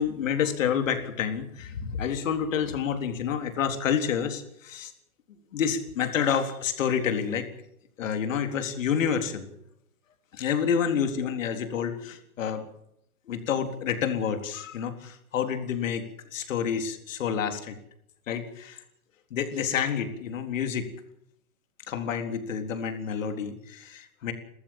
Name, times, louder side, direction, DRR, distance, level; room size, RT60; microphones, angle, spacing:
voice 1, 0.0-4.9 5.5-7.5 8.0-9.5 10.3-12.7 13.3-16.0 16.3-17.8 18.3-18.8 19.3-20.9 21.9-24.3, left 7 dB, 60° left, 7 dB, 3.9 m, -28 dB
29.0 x 14.5 x 7.4 m, 0.74 s
hypercardioid pair, 155°, 44 cm